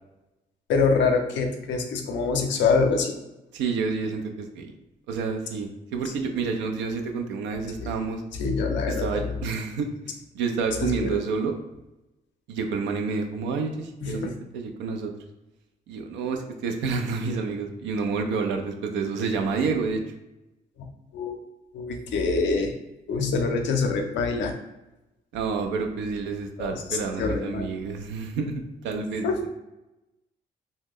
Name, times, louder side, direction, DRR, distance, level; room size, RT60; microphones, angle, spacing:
voice 1, 0.7-3.1 8.4-9.3 10.8-11.1 14.0-14.2 21.1-21.4 21.7-22.7 23.1-24.6 26.6-27.7 29.2-29.4, left 4 dB, 80° left, 4 dB, 0.5 m, -25 dB
voice 2, 3.5-4.7 5.1-8.2 8.9-9.9 10.3-11.6 12.5-15.1 15.9-20.0 25.3-29.5, right 4 dB, 90° right, 4 dB, 0.4 m, -29 dB
2.8 x 2.1 x 3.6 m, 0.97 s
supercardioid pair, 55°, 19 cm